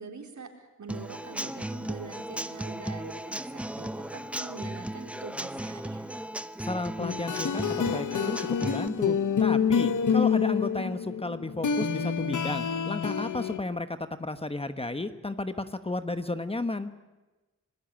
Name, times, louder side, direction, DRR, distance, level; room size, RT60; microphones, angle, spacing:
voice 1, 0.0-6.2, right 4 dB, 70° right, 4 dB, 4.1 m, -44 dB
Human voice / Acoustic guitar / Drum, 0.9-8.9, right 1 dB, 5° right, 0.8 m, -36 dB
voice 2, 6.6-16.9, left 2 dB, 20° left, 10 dB, 1.2 m, -33 dB
sound 1, 7.0-13.6, left 7 dB, 85° left, 1.2 m, -27 dB
26.5 x 20.0 x 8.8 m, 1.1 s
wide cardioid pair, 145°, 30 cm